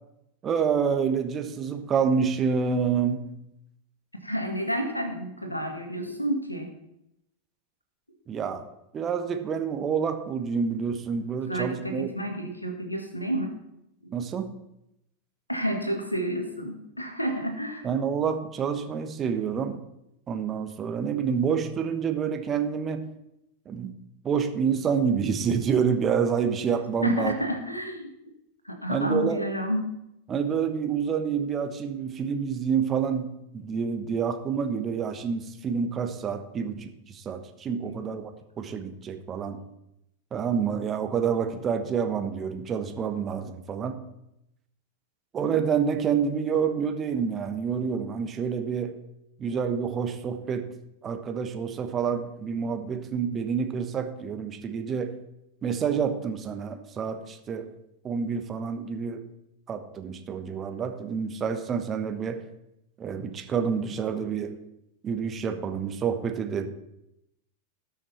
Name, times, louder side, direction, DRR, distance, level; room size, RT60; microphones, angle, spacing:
voice 1, 0.4-3.3 8.3-8.6 8.9-12.1 14.1-14.5 17.8-19.8 20.3-23.1 23.6-23.9 24.2-27.3 28.9-29.4 30.3-39.6 40.3-44.0 45.3-48.9 49.4-50.7 51.0-55.1 55.6-57.7 58.0-59.3 59.7-62.4 63.0-64.6 65.0-66.7, right 6 dB, 25° right, 8 dB, 1.2 m, -28 dB
voice 2, 4.2-6.7 11.5-13.5 15.5-17.9 27.0-28.1 28.6-29.8 36.6-36.7 37.8-38.0, equal, 85° left, 5 dB, 1.9 m, -30 dB
18.5 x 6.5 x 4.2 m, 0.83 s
figure-of-eight pair, 90°, 0 cm